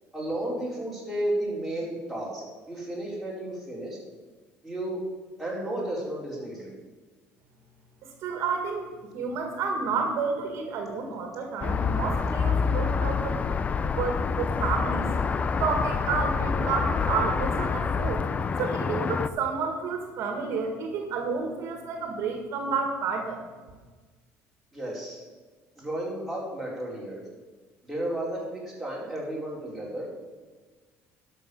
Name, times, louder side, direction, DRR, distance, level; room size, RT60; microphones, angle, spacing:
voice 1, 0.1-4.0 4.6-5.0 5.4-6.7 24.7-25.2 25.8-27.2 27.8-30.0, right 1 dB, ahead, -6 dB, 4.5 m, -33 dB
voice 2, 8.0-13.5 13.9-15.1 15.6-18.2 18.6-23.4, right 5 dB, 60° right, 3 dB, 2.0 m, -30 dB
sound 1, 11.6-19.3, left 5 dB, 25° left, 0.5 m, -27 dB
11.5 x 6.7 x 7.1 m, 1.4 s
cardioid pair, 130°, 5 cm